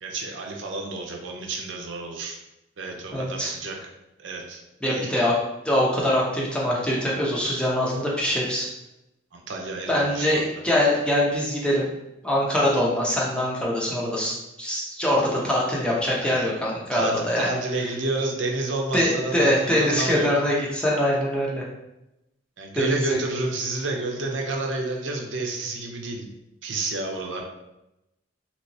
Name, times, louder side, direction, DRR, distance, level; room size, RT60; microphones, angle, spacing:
voice 1, 0.0-2.4 2.8-3.8 4.2-4.6 4.9-5.1 9.3-10.4 14.2-14.3 16.2-16.5 16.9-20.3 22.6-26.3 26.6-27.4, right 2 dB, 80° right, 2 dB, 0.6 m, -30 dB
voice 2, 3.1-3.5 4.8-5.3 5.6-8.7 9.9-11.9 12.2-17.6 18.9-21.6 22.7-23.2, left 1 dB, 5° left, -4 dB, 0.7 m, -23 dB
3.2 x 2.9 x 2.7 m, 0.90 s
head